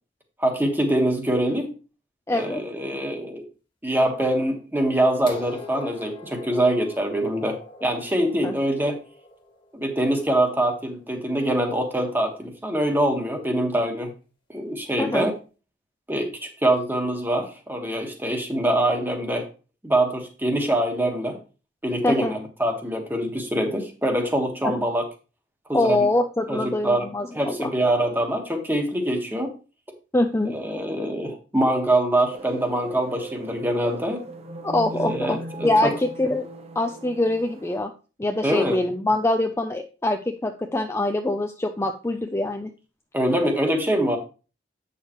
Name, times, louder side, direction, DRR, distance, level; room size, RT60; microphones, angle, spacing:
voice 1, 0.4-1.8 2.3-3.4 3.8-9.0 9.7-14.1 14.5-15.3 16.1-19.5 19.8-21.4 21.8-25.0 25.7-26.1 26.5-27.1 27.3-29.5 30.4-34.2 35.0-35.9 38.4-38.8 43.1-44.2, right 1 dB, 10° right, 3 dB, 1.5 m, -24 dB
voice 2, 2.3-2.6 8.4-8.6 15.0-15.3 22.0-22.3 24.6-24.9 25.7-27.7 30.1-30.5 34.6-36.5 36.8-37.9 38.2-42.7, left 2 dB, 15° left, 5 dB, 0.5 m, -24 dB
sound 1, 5.3-11.1 12.2-12.3, left 2 dB, 30° left, 1.7 m, -43 dB
sound 2, 32.3-37.8, right 1 dB, 35° right, 0.9 m, -38 dB
8.3 x 6.5 x 3.1 m, 0.33 s
head